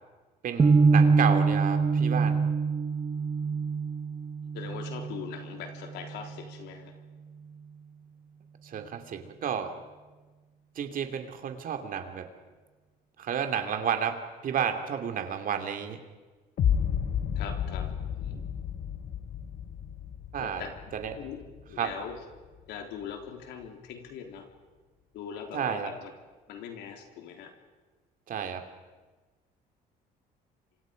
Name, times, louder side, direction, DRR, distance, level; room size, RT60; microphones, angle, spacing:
voice 1, 0.4-2.4 8.6-9.7 10.7-12.3 13.2-14.2 14.4-16.0 18.3-18.4 20.3-20.7 20.9-21.2 21.8-21.9 25.5-25.9 28.3-28.6, right 8 dB, 55° right, 6 dB, 2.8 m, -31 dB
sound 1, 0.6-6.7, right 4 dB, 25° right, 1.0 m, -25 dB
voice 2, 4.5-7.0 17.4-18.4 20.4-20.8 21.2-21.4 21.7-22.2 22.7-24.5 25.1-26.1 26.5-27.5, left 7 dB, 85° left, 4 dB, 3.7 m, -41 dB
sound 2, 16.6-22.6, left 8 dB, 55° left, 1.6 m, -32 dB
30.0 x 25.5 x 5.3 m, 1.3 s
cardioid pair, 110°, 17 cm